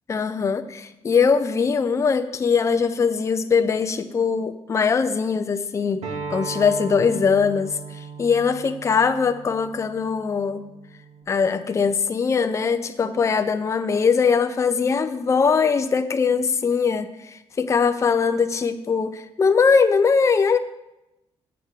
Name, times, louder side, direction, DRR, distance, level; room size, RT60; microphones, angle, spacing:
voice 1, 0.1-6.0 6.3-10.6 11.3-20.6, left 5 dB, 25° left, 9 dB, 0.5 m, -21 dB
Acoustic guitar, 6.0-11.2, right 4 dB, 70° right, 2.1 m, -37 dB
8.5 x 7.9 x 5.0 m, 0.93 s
cardioid pair, 150°, 11 cm